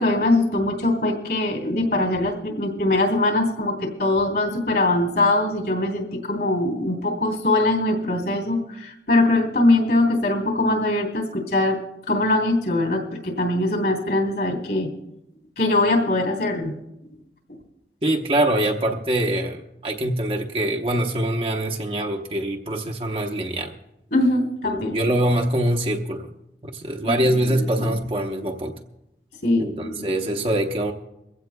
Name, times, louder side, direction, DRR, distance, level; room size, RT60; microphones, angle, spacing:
voice 1, 0.0-11.8 12.1-14.9 15.6-16.8 24.1-25.0 27.0-28.0 29.4-30.0, left 2 dB, 60° left, 3 dB, 3.2 m, -22 dB
voice 2, 18.0-23.7 24.6-26.3 26.6-28.8 29.6-30.9, right 1 dB, 30° right, 2 dB, 0.8 m, -24 dB
23.5 x 16.0 x 2.2 m, 0.88 s
head